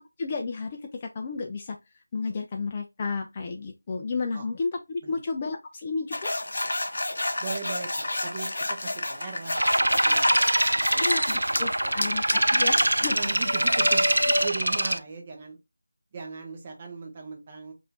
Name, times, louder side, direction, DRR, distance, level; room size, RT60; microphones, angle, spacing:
voice 1, 0.0-1.8 2.1-6.3 11.0-13.3, left 4 dB, 20° left, 0.4 m, -32 dB
sound 1, 6.1-11.6 12.0-14.5, left 1 dB, 60° left, 0.7 m, -30 dB
voice 2, 7.4-10.4 10.7-15.6 16.1-17.7, right 5 dB, 25° right, 0.9 m, -40 dB
sound 2, 9.6-15.0, right 1 dB, 85° right, 0.3 m, -23 dB
4.0 x 2.5 x 2.7 m
figure-of-eight pair, 170°, 0 cm